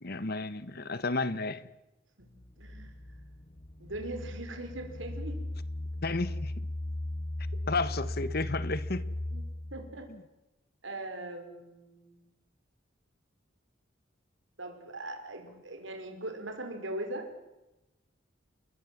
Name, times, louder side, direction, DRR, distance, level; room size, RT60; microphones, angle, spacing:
voice 1, 0.0-1.6 6.0-6.5 7.7-9.0 10.1-10.2, left 3 dB, 55° left, 1.3 m, -32 dB
sound 1, 2.2-10.0, left 1 dB, 35° left, 0.9 m, -37 dB
voice 2, 2.6-2.9 3.8-5.4 9.3-9.4 9.7-10.1 10.8-12.3 14.6-17.3, right 1 dB, 90° right, 4.8 m, -40 dB
29.0 x 21.0 x 7.5 m
head